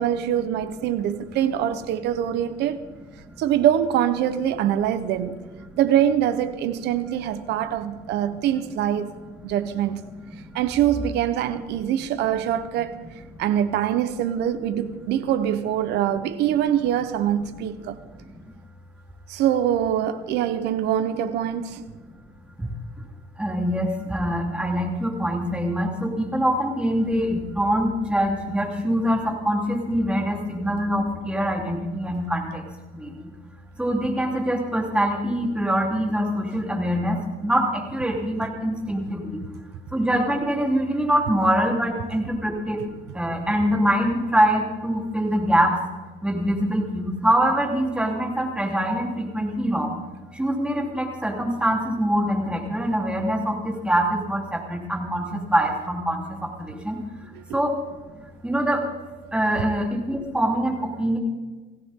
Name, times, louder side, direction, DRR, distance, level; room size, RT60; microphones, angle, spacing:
voice 1, 0.0-2.8 3.4-5.4 5.8-9.1 9.4-10.1 10.5-12.9 13.4-18.0 19.3-21.8 57.3-57.6 59.5-59.6, right 10 dB, 85° right, 1.1 m, -24 dB
voice 2, 23.4-32.6 32.9-33.3 33.8-39.4 39.9-45.8 46.2-49.9 50.3-57.0 57.5-57.8 58.1-58.9 59.3-61.2, equal, 5° right, 3.7 m, -24 dB
19.0 x 16.5 x 3.8 m
cardioid pair, 110°, 17 cm